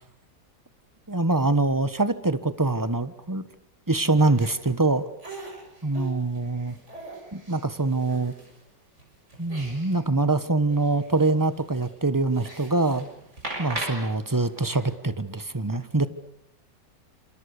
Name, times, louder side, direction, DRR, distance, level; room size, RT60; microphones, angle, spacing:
voice 1, 1.1-3.4 3.9-5.0 5.8-6.7 7.3-8.3 9.4-13.1 13.6-16.1, right 2 dB, 15° right, 13 dB, 1.1 m, -24 dB
sound 1, 4.1-4.5 5.2-8.6 9.0-10.0 10.3-10.4 10.7-14.9, right 2 dB, 40° right, 7.0 m, -40 dB
28.0 x 27.5 x 6.7 m, 0.78 s
omnidirectional pair, 1.9 m